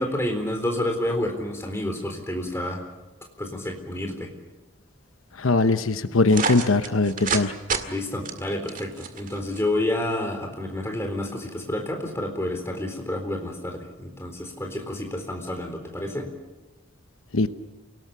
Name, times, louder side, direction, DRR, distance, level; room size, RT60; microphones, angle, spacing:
voice 1, 0.0-2.8 3.4-4.3 7.9-16.3, left 1 dB, 10° left, 3 dB, 4.0 m, -29 dB
voice 2, 5.4-7.5 17.3-17.5, left 3 dB, 85° left, 11 dB, 0.9 m, -21 dB
sound 1, 6.3-7.4 7.7-7.8 8.3-9.6, right 5 dB, 40° right, 2.0 m, -28 dB
28.5 x 18.5 x 6.9 m, 1.2 s
head